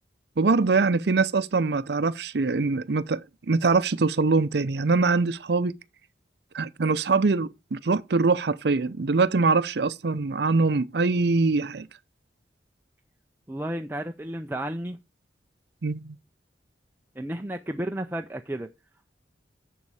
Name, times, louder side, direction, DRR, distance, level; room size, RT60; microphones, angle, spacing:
voice 1, 0.4-3.2 3.5-5.7 6.5-11.9 15.8-16.2, right 4 dB, 65° right, 0.6 m, -23 dB
voice 2, 13.5-15.0 17.2-18.7, right 1 dB, 10° right, 0.5 m, -32 dB
7.4 x 6.9 x 4.8 m
head